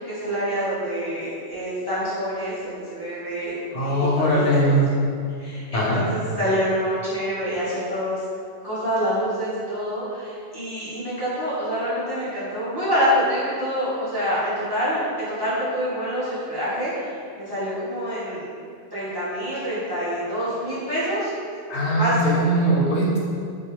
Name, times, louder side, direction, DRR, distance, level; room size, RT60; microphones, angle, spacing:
voice 1, 0.0-3.5 3.8-4.8 5.4-8.2 8.6-18.4 18.9-21.3 22.0-22.4, equal, 30° right, -12 dB, 0.5 m, -26 dB
voice 2, 3.7-4.9 5.7-6.0 21.7-23.2, right 1 dB, 80° left, -5 dB, 0.9 m, -20 dB
2.3 x 2.1 x 2.8 m, 2.4 s
omnidirectional pair, 1.2 m